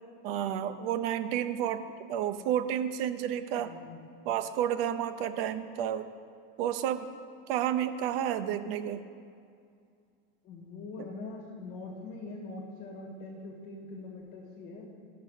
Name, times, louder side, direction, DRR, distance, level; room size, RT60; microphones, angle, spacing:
voice 1, 0.2-3.7 4.2-6.1 6.6-7.1 7.5-9.0, right 10 dB, 75° right, 10 dB, 0.6 m, -31 dB
voice 2, 3.6-4.1 10.4-14.9, left 3 dB, 35° left, -2 dB, 1.7 m, -43 dB
12.5 x 6.0 x 6.5 m, 2.3 s
cardioid pair, 175°, 30 cm